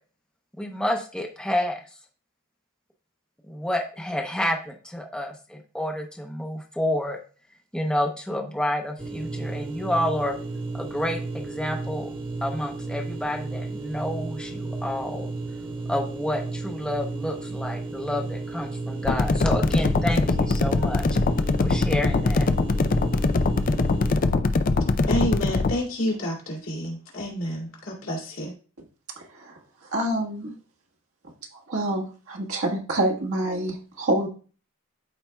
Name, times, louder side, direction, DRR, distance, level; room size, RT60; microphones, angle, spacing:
voice 1, 0.6-1.8 3.5-7.2 7.7-10.4 10.8-12.1 12.4-15.3 15.9-21.0 21.6-22.4, left 1 dB, 5° left, 0.8 m, -29 dB
sound 1, 9.0-24.2, right 3 dB, 25° right, 1.2 m, -33 dB
sound 2, 19.0-25.7, left 3 dB, 40° left, 0.4 m, -22 dB
voice 2, 25.1-28.6, equal, 65° left, 2.4 m, -29 dB
voice 3, 29.9-30.5 31.7-34.3, right 1 dB, 75° right, 1.5 m, -26 dB
12.5 x 4.3 x 2.3 m
head